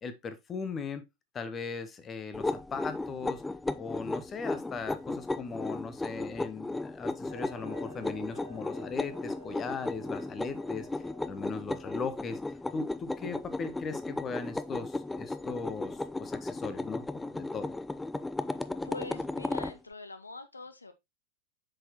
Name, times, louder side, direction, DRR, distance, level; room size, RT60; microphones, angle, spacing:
voice 1, 0.0-1.1 1.3-3.4 3.8-10.9 11.2-12.4 12.7-17.7, left 5 dB, 25° left, 0.9 m, -38 dB
sound 1, 2.3-19.8, left 2 dB, 5° left, 0.3 m, -35 dB
Clock, 7.3-12.3, right 1 dB, 90° right, 2.3 m, -52 dB
voice 2, 18.8-20.9, left 3 dB, 80° left, 0.5 m, -43 dB
7.6 x 4.4 x 2.9 m
figure-of-eight pair, 90°, 0 cm